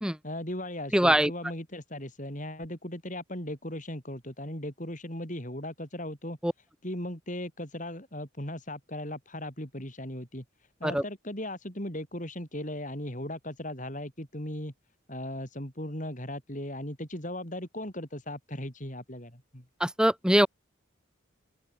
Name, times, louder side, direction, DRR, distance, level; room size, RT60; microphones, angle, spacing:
voice 1, 0.2-6.4 6.8-10.4 10.8-14.7 15.1-19.6, left 1 dB, 40° left, 6.1 m, -37 dB
voice 2, 0.9-1.3 6.4-6.5 10.8-11.0 19.8-20.5, equal, 5° right, 1.4 m, -23 dB
open air
head